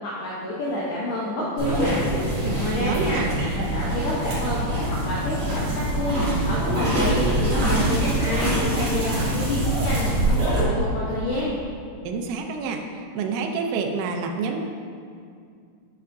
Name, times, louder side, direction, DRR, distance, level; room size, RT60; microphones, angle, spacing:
voice 1, 0.0-2.1 2.6-3.3 3.5-11.6, left 1 dB, 80° left, -6 dB, 2.2 m, -29 dB
sound 1, 1.6-10.6, right 1 dB, 50° right, 2.3 m, -24 dB
voice 2, 2.4-3.3 12.0-12.8 13.1-14.6, right 5 dB, 80° right, 2 dB, 3.1 m, -28 dB
10.5 x 6.4 x 2.6 m, 2.3 s
omnidirectional pair, 6.0 m